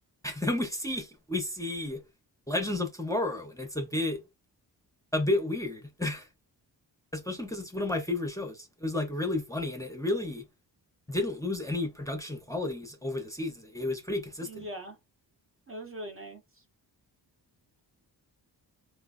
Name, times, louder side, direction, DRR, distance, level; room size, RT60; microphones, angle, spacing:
voice 1, 0.2-2.0 2.5-4.2 5.1-6.3 7.1-10.4 11.1-14.7, left 2 dB, 10° left, 0.6 m, -32 dB
voice 2, 14.4-15.0 15.7-16.6, right 1 dB, 30° right, 0.7 m, -41 dB
3.1 x 2.2 x 2.3 m
cardioid pair, 75°, 41 cm